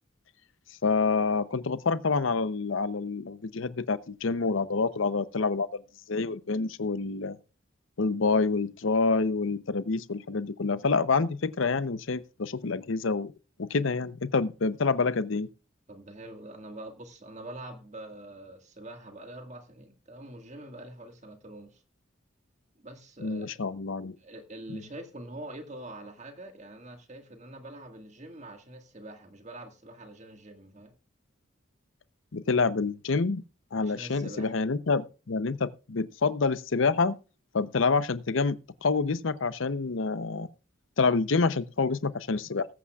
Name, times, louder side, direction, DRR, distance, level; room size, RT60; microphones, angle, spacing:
voice 1, 0.8-5.8 6.1-7.4 8.0-13.3 13.6-15.5 23.2-24.1 24.7-24.8 32.3-33.4 33.7-37.2 37.5-40.5 41.0-42.7, left 4 dB, 70° left, 0.7 m, -27 dB
voice 2, 15.9-21.8 22.8-23.5 24.2-30.9 33.8-34.5, right 1 dB, 35° right, 1.7 m, -44 dB
19.5 x 8.4 x 2.4 m
head